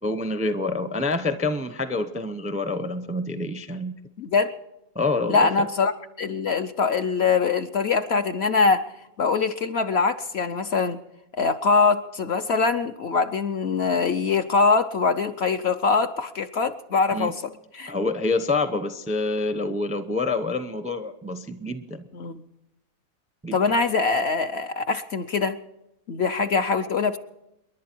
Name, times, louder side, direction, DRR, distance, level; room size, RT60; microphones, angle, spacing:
voice 1, 0.0-3.9 4.9-5.7 17.1-17.3 17.9-22.0 23.4-23.6, left 3 dB, 10° right, 10 dB, 0.5 m, -27 dB
voice 2, 4.2-4.5 5.3-5.9 6.2-8.9 9.2-11.0 11.4-17.9 22.1-22.4 23.5-25.6 26.1-27.2, left 4 dB, 55° left, 7 dB, 0.8 m, -23 dB
28.5 x 11.0 x 4.5 m, 0.86 s
omnidirectional pair, 1.5 m